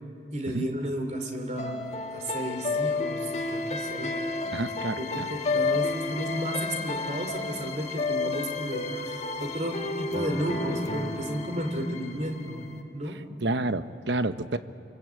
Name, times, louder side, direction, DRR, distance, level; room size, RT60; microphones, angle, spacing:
voice 1, 0.3-1.8 2.1-4.4 5.0-9.0 9.4-12.6 12.9-13.2, right 1 dB, 40° right, 4 dB, 3.5 m, -33 dB
sound 1, 1.6-12.8, left 3 dB, 40° left, 1.7 m, -31 dB
voice 2, 4.5-5.3 13.4-14.6, right 2 dB, 75° right, 11 dB, 1.0 m, -29 dB
28.0 x 24.5 x 8.6 m, 2.4 s
head